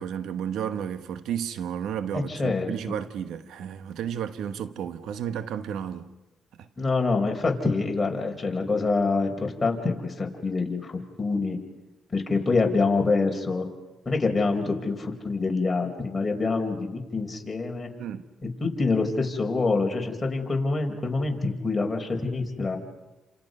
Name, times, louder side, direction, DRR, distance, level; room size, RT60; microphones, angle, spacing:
voice 1, 0.0-6.1 6.5-6.7 18.0-18.2, right 8 dB, 80° right, 1.1 m, -32 dB
voice 2, 2.1-2.7 6.8-11.6 12.1-13.7 14.0-17.9 18.6-22.8, left 3 dB, 25° left, 4.8 m, -26 dB
29.5 x 27.5 x 5.5 m
cardioid pair, 90°, 0 cm